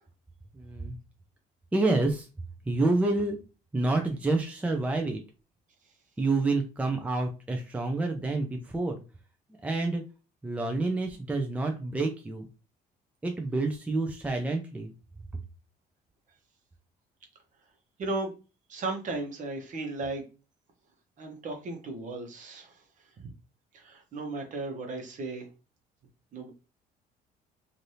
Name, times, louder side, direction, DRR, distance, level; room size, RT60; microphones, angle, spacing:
voice 1, 0.5-1.0 1.7-2.3 2.7-3.4 3.7-5.2 6.2-9.0 9.6-10.0 10.4-12.5 13.2-14.9, right 2 dB, 10° right, 0.5 m, -28 dB
voice 2, 18.0-18.3 18.7-20.2 21.2-22.8 23.2-23.3 23.7-25.5 26.3-26.5, right 2 dB, 50° right, 1.0 m, -35 dB
3.2 x 2.6 x 2.7 m
cardioid pair, 110°, 17 cm